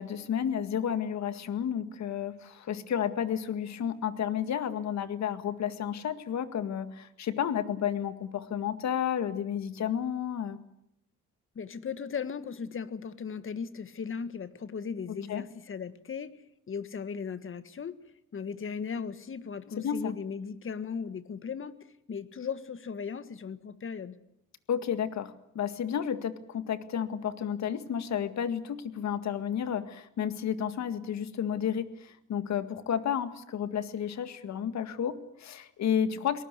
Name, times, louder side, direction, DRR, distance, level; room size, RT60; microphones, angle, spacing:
voice 1, 0.0-10.6 15.1-15.4 19.8-20.1 24.7-36.4, left 8 dB, 65° left, 11 dB, 1.9 m, -31 dB
voice 2, 11.6-16.3 16.7-18.0 18.3-24.2, left 6 dB, 45° left, 13 dB, 1.7 m, -37 dB
23.5 x 19.0 x 8.3 m, 0.78 s
cardioid pair, 90°, 30 cm